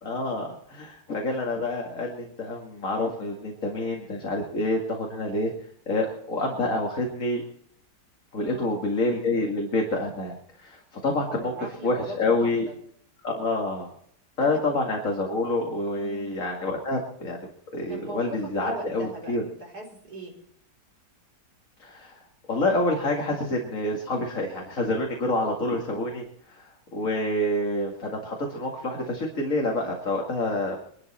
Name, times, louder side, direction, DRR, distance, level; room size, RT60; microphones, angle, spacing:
voice 1, 0.0-5.5 5.9-7.4 8.3-11.5 11.8-12.7 13.2-13.9 14.4-19.4 21.8-22.2 22.5-30.8, left 2 dB, 45° left, 0 dB, 2.6 m, -27 dB
voice 2, 8.4-8.7 11.1-12.7 15.9-16.3 17.9-20.3, right 1 dB, 60° right, -1 dB, 5.3 m, -40 dB
22.0 x 12.5 x 4.3 m, 0.65 s
omnidirectional pair, 1.9 m